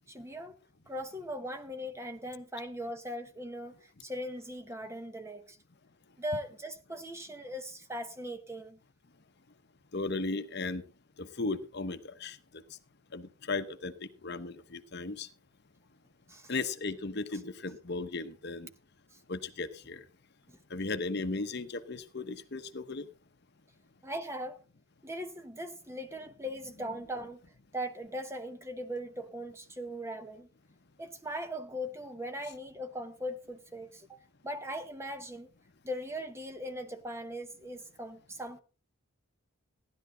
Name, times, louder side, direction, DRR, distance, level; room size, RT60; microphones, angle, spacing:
voice 1, 0.1-0.6 0.9-5.6 6.2-8.8 16.3-16.5 20.5-20.6 24.0-24.6 25.0-27.4 27.7-30.5 31.0-35.5 35.8-38.6, equal, 10° right, 1.0 m, -39 dB
voice 2, 9.9-10.8 11.2-12.4 13.1-13.9 14.2-15.3 16.5-18.7 19.3-20.0 20.7-23.0, left 3 dB, 50° left, 0.9 m, -36 dB
15.5 x 11.5 x 3.8 m
head